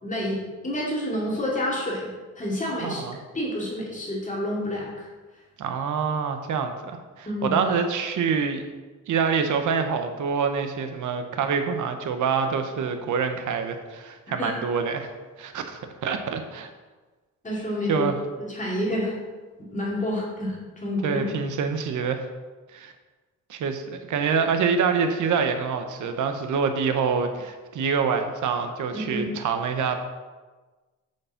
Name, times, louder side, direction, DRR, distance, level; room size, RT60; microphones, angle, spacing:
voice 1, 0.0-2.1 2.4-3.0 3.3-5.1 7.3-7.6 14.4-14.5 17.4-18.1 18.4-19.1 19.6-21.2 29.1-29.3, left 1 dB, 25° left, -4 dB, 2.6 m, -28 dB
voice 2, 2.8-3.2 5.6-8.7 9.1-15.1 15.4-16.7 17.9-18.2 21.0-22.2 22.7-22.9 23.5-23.8 24.1-30.1, right 6 dB, 80° right, 7 dB, 1.1 m, -26 dB
7.0 x 6.5 x 5.8 m, 1.3 s
cardioid pair, 110°, 30 cm